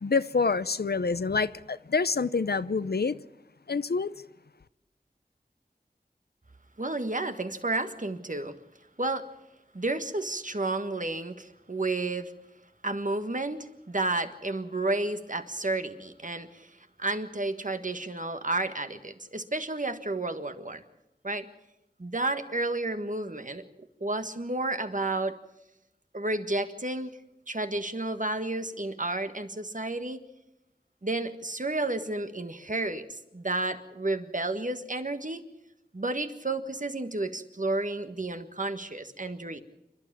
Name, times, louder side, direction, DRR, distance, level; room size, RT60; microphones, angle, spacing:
voice 1, 0.0-3.2 3.7-4.1, left 4 dB, 90° left, 0.7 m, -27 dB
voice 2, 6.8-8.5 9.0-9.3 9.7-12.3 12.8-16.7 17.0-20.8 21.2-21.5 22.0-23.6 24.0-25.4 26.1-27.2 27.5-30.2 31.0-35.4 35.9-39.6, right 2 dB, 55° right, 1.6 m, -31 dB
27.5 x 12.0 x 8.7 m
wide cardioid pair, 40°, 16 cm